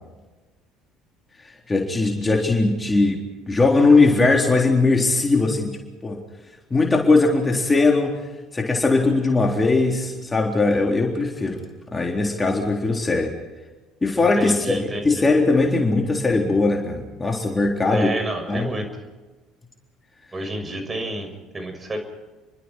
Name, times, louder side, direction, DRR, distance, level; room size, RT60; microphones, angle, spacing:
voice 1, 1.7-5.8 6.0-6.2 6.7-8.1 8.5-11.6 11.9-13.3 14.0-18.2 18.5-18.7, left 3 dB, 20° left, 1 dB, 3.8 m, -20 dB
voice 2, 14.2-15.2 17.9-18.9 20.3-22.0, right 1 dB, 25° right, 6 dB, 6.6 m, -29 dB
30.0 x 24.0 x 4.6 m, 1.2 s
figure-of-eight pair, 60°, 0 cm